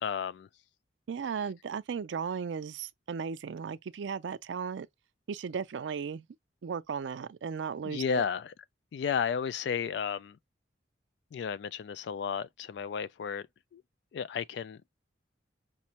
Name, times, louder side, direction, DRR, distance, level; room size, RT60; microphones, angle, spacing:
voice 1, 0.0-0.5 7.8-8.5 8.9-10.4 11.3-13.4 13.7-13.8 14.1-14.8, left 7 dB, 70° left, 0.3 m, -33 dB
voice 2, 1.1-4.9 5.3-6.2 6.6-8.3, right 6 dB, 85° right, 0.4 m, -36 dB
5.2 x 2.1 x 2.8 m
head